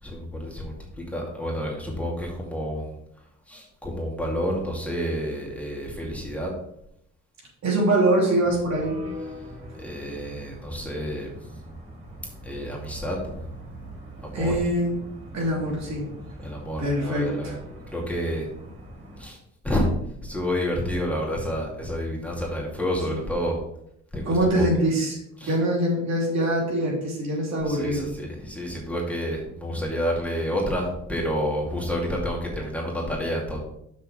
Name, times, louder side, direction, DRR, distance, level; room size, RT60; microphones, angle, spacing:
voice 1, 0.0-3.0 3.5-6.5 9.8-11.3 12.4-13.5 14.2-14.5 16.4-17.5 17.9-18.5 19.2-19.4 19.6-19.9 20.2-23.6 24.1-24.7 25.4-25.5 27.7-33.6, equal, 5° left, -2 dB, 2.4 m, -29 dB
voice 2, 7.6-9.0 14.3-14.9 15.3-16.1 16.8-17.5 23.1-23.2 24.3-25.2 25.4-28.1, right 1 dB, 65° right, -2 dB, 3.1 m, -23 dB
sound 1, 8.4-19.2, equal, 45° right, 3.3 m, -41 dB
6.4 x 5.5 x 4.9 m, 0.74 s
cardioid pair, 90°, 30 cm